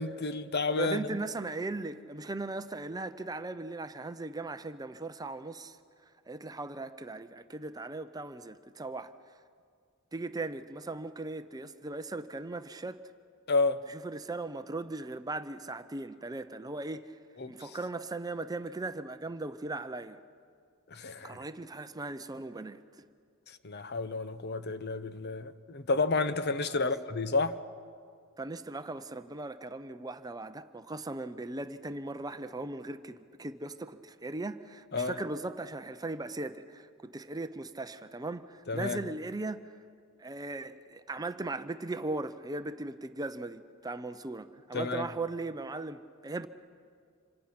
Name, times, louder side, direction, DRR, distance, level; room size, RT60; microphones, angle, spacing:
voice 1, 0.0-1.1 13.5-13.8 17.4-17.5 20.9-21.5 23.5-27.6 34.9-35.2 38.7-39.0 44.7-45.1, left 3 dB, 50° left, 1.0 m, -31 dB
voice 2, 0.7-5.8 6.3-9.1 10.1-13.0 13.9-17.2 17.5-20.2 21.2-22.8 26.7-26.9 28.4-39.6 40.2-46.5, right 2 dB, 20° right, 0.6 m, -38 dB
26.5 x 26.0 x 6.0 m
head